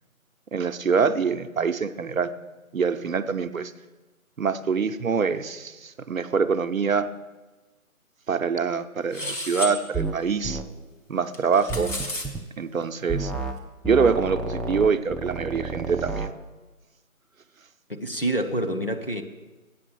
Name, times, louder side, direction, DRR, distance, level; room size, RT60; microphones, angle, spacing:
voice 1, 0.5-2.3 2.7-3.7 4.4-7.1 8.3-10.6 11.1-11.9 12.6-13.3 13.8-16.3, right 5 dB, 70° right, 0.6 m, -25 dB
sound 1, 9.1-9.8 11.3-12.3, left 1 dB, 60° left, 1.7 m, -32 dB
sound 2, 9.9-10.2 10.4-10.7 11.7-12.4 13.1-13.6 13.8-16.3, right 3 dB, ahead, 0.4 m, -30 dB
voice 2, 17.9-19.2, right 1 dB, 40° left, 0.6 m, -27 dB
8.5 x 6.9 x 7.7 m
figure-of-eight pair, 180°, 43 cm